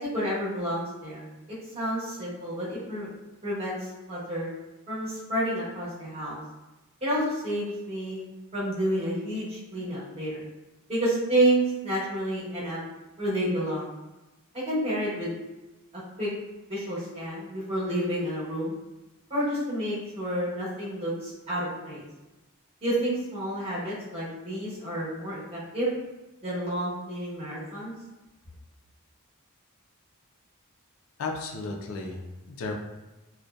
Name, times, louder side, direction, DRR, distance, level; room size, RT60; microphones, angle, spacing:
voice 1, 0.0-3.1 3.4-4.5 4.9-6.4 7.0-8.3 8.5-10.4 10.9-12.8 13.2-13.9 14.5-15.4 16.2-16.3 16.7-18.8 19.3-22.0 22.8-25.9 26.4-27.9, right 1 dB, 30° right, -8 dB, 0.9 m, -30 dB
voice 2, 31.2-32.7, left 3 dB, 70° left, 1 dB, 0.4 m, -34 dB
2.6 x 2.2 x 2.2 m, 1.1 s
head